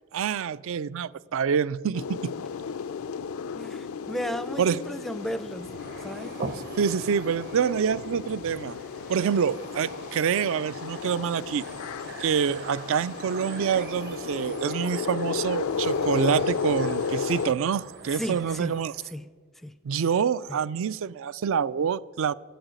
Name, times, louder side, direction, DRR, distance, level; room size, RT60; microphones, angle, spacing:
voice 1, 0.1-2.3 4.6-4.8 6.8-8.8 9.1-11.6 12.2-18.9 19.8-22.3, right 7 dB, 65° right, 0.4 m, -26 dB
sound 1, 1.9-17.5, left 5 dB, 80° left, 0.4 m, -33 dB
voice 2, 3.5-6.4 18.2-18.8 19.1-19.3 19.6-19.8, equal, ahead, 0.4 m, -35 dB
sound 2, 5.2-19.1, right 3 dB, 50° right, 1.0 m, -43 dB
14.5 x 8.1 x 9.1 m
head